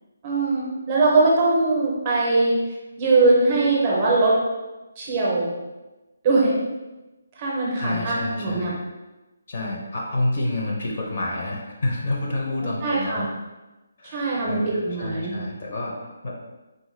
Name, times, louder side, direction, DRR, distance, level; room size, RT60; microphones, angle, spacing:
voice 1, 0.2-2.5 3.0-4.3 5.0-5.5 6.2-6.5 7.4-8.7 12.8-13.3 14.1-15.4, right 3 dB, 20° right, -4 dB, 0.6 m, -21 dB
voice 2, 7.7-8.7 9.5-13.3 14.0-16.4, left 2 dB, 35° left, -2 dB, 0.5 m, -29 dB
3.8 x 2.1 x 3.1 m, 1.1 s
hypercardioid pair, 175°, 0 cm